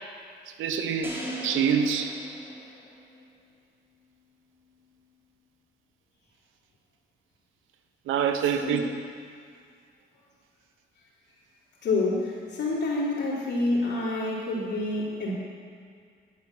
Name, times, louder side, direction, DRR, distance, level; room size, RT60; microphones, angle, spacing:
voice 1, 0.6-2.2 8.1-8.9, right 7 dB, 90° right, 7 dB, 1.0 m, -26 dB
sound 1, 1.0-3.3, equal, 10° right, 3.1 m, -38 dB
voice 2, 11.8-15.3, left 2 dB, 60° left, -6 dB, 3.2 m, -27 dB
11.0 x 10.5 x 6.0 m, 2.2 s
cardioid pair, 90°, 20 cm